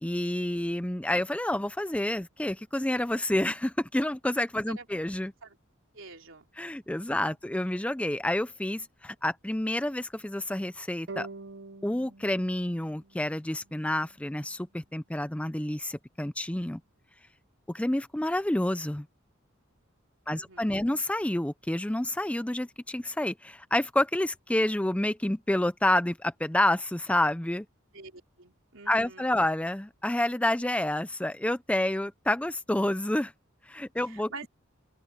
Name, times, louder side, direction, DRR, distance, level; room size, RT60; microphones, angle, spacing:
voice 1, 0.0-5.3 6.6-11.3 11.8-16.8 17.7-19.1 20.3-27.7 28.9-33.3 33.7-34.5, left 1 dB, 5° left, 0.5 m, -29 dB
voice 2, 5.9-6.5 7.1-7.2 20.3-20.9 27.9-29.4 34.0-34.5, right 4 dB, 75° right, 3.5 m, -46 dB
sound 1, 11.1-14.3, right 3 dB, 55° right, 0.8 m, -46 dB
open air
head